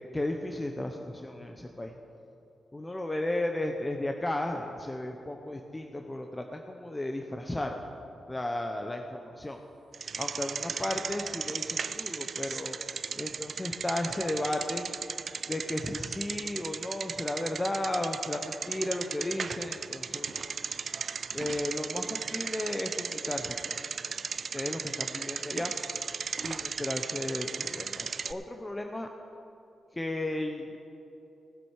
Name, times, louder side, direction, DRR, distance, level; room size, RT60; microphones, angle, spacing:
voice 1, 0.1-1.9 2.7-7.8 8.3-9.6 10.2-12.8 13.2-14.8 15.5-20.5 21.3-23.8 24.1-24.2 24.5-25.7 26.4-29.1 29.9-30.8, left 1 dB, 20° left, 3 dB, 0.8 m, -34 dB
Bicycle, 9.9-28.3, right 6 dB, 60° right, 0.4 m, -36 dB
18.0 x 7.8 x 4.8 m, 2.7 s
cardioid pair, 80°, 0 cm